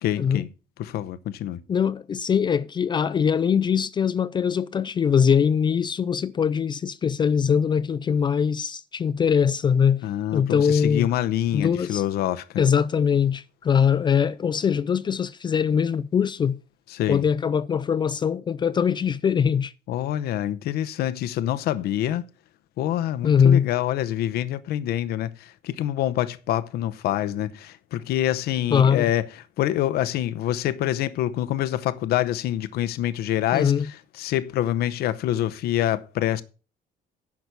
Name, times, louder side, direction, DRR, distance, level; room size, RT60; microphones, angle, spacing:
voice 1, 0.0-0.5 0.8-1.6 10.0-12.6 16.9-17.2 19.9-22.2 22.8-36.4, left 12 dB, 75° left, 0.8 m, -26 dB
voice 2, 1.7-10.0 10.3-11.1 11.5-12.0 12.6-16.6 17.1-19.7 23.2-23.7 28.7-29.1 33.5-33.9, left 7 dB, 30° left, 0.4 m, -22 dB
10.5 x 6.2 x 6.8 m
cardioid pair, 150°, 16 cm